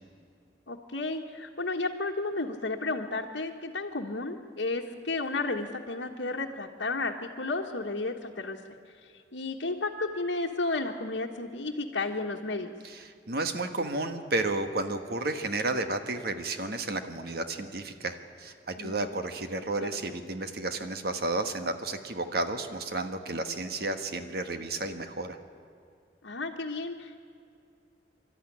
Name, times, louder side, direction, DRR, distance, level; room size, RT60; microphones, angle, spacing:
voice 1, 0.7-8.8 9.3-12.7 18.8-19.1 19.8-20.0 26.2-27.2, left 3 dB, 85° left, -2 dB, 1.3 m, -33 dB
voice 2, 12.8-25.4, right 2 dB, 55° right, 7 dB, 1.4 m, -32 dB
24.5 x 13.0 x 10.0 m, 2.4 s
head